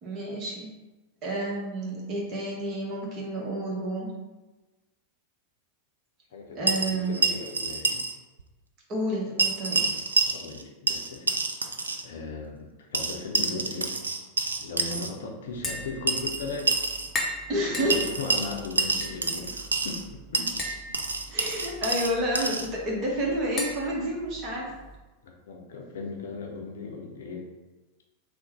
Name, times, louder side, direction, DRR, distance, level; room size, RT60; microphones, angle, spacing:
voice 1, 0.0-0.7 1.2-4.1 6.5-7.2 8.9-9.8 17.5-18.1 21.3-24.7, right 1 dB, 35° right, -2 dB, 0.9 m, -30 dB
voice 2, 6.3-8.1 9.9-11.3 11.8-14.1 14.6-16.7 17.7-20.6 25.2-27.5, left 3 dB, 60° left, 1 dB, 0.5 m, -38 dB
sound 1, 6.7-8.1 8.4-8.5 9.4-10.6 10.9-12.0 12.9-15.1 16.1-17.1 17.9-20.0 20.3-22.7, right 4 dB, 75° right, 0.3 m, -27 dB
Tap, 15.5-25.0, left 1 dB, 25° left, 0.8 m, -39 dB
3.7 x 2.1 x 4.1 m, 1.1 s
figure-of-eight pair, 90°, 0 cm